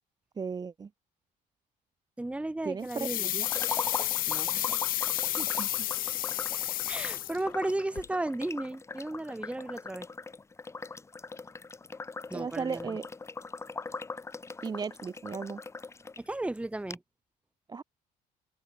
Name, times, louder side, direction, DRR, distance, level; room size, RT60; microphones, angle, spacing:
voice 1, 0.4-0.9 2.6-3.5 5.4-5.7 12.3-13.1 14.6-15.6 17.7-17.8, right 5 dB, 25° right, 0.6 m, -36 dB
voice 2, 2.2-3.4 4.3-4.8 6.9-10.1 12.3-13.0 16.2-17.0, right 2 dB, 5° right, 1.3 m, -34 dB
sound 1, 2.9-7.7 8.0-8.1, left 14 dB, 55° left, 0.4 m, -31 dB
sound 2, 3.4-16.2 16.5-16.6 16.9-17.0, left 4 dB, 15° left, 0.6 m, -41 dB
open air
cardioid pair, 110°, 17 cm